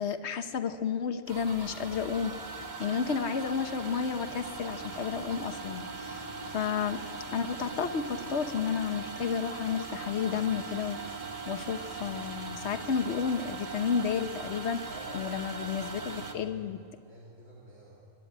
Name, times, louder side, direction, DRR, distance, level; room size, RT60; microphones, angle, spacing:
voice 1, 0.0-2.4 2.8-6.2 6.5-7.0 7.3-11.0 11.5-14.8 15.1-16.8, left 7 dB, 60° left, 9 dB, 1.2 m, -31 dB
sound 1, 1.3-16.3, right 3 dB, 35° right, 1.4 m, -40 dB
voice 2, 14.9-18.1, right 1 dB, 70° right, -4 dB, 2.9 m, -51 dB
24.5 x 12.0 x 8.9 m, 2.5 s
omnidirectional pair, 1.3 m